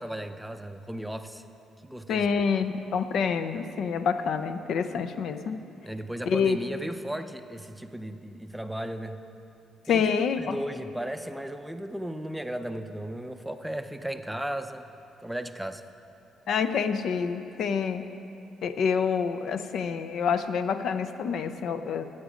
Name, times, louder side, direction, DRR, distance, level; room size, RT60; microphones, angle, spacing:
voice 1, 0.0-1.4 1.8-2.4 5.8-9.2 9.9-14.9 15.2-15.8, right 1 dB, 5° right, 8 dB, 0.5 m, -35 dB
voice 2, 2.1-5.6 6.3-6.6 9.9-10.6 16.5-18.1 18.6-22.0, left 6 dB, 70° left, 10 dB, 0.5 m, -27 dB
14.0 x 8.1 x 5.1 m, 2.7 s
cardioid pair, 90°, 0 cm